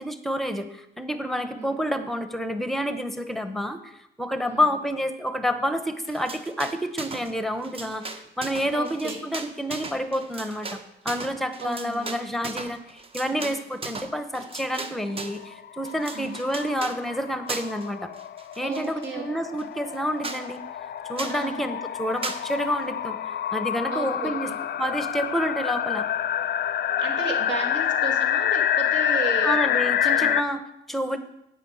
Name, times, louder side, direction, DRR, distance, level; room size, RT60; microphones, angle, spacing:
voice 1, 0.0-18.1 18.6-20.6 21.1-24.5 24.8-26.1 29.4-31.2, equal, ahead, 9 dB, 0.9 m, -29 dB
sound 1, 6.1-7.3 7.6-15.4 15.8-17.0 17.5-17.9 18.2-19.1 19.6-19.7 19.9-20.0 20.2-20.4 21.2-21.4 22.2-22.4, right 3 dB, 30° right, 0.9 m, -37 dB
voice 2, 8.7-9.2 11.6-12.2 13.3-13.5 16.1-16.4 18.6-19.2 21.3-21.6 23.9-24.5 27.0-29.6 30.0-30.3, right 4 dB, 65° right, 1 dB, 2.3 m, -34 dB
sound 2, 14.8-14.9 15.1-15.2 15.4-30.4, left 10 dB, 55° left, 0.5 m, -27 dB
8.5 x 5.5 x 7.9 m, 0.82 s
cardioid pair, 90°, 20 cm